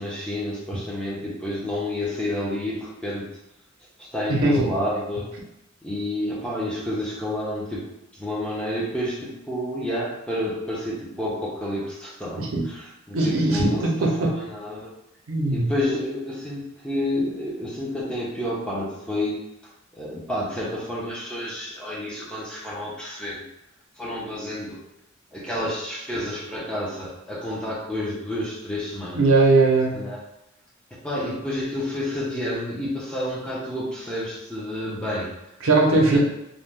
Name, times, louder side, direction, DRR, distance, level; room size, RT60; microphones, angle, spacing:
voice 1, 0.0-3.3 4.0-5.3 5.8-7.9 8.1-13.8 14.2-14.9 15.5-19.4 19.9-23.4 24.0-24.8 25.3-29.3 29.9-30.2 31.0-35.3 35.9-36.2, left 1 dB, 5° left, -6 dB, 0.7 m, -30 dB
voice 2, 4.3-4.7 12.4-12.6 13.1-14.3 15.3-15.7 29.1-30.0 35.6-36.2, right 2 dB, 70° right, -1 dB, 0.6 m, -19 dB
2.7 x 2.2 x 3.3 m, 0.87 s
head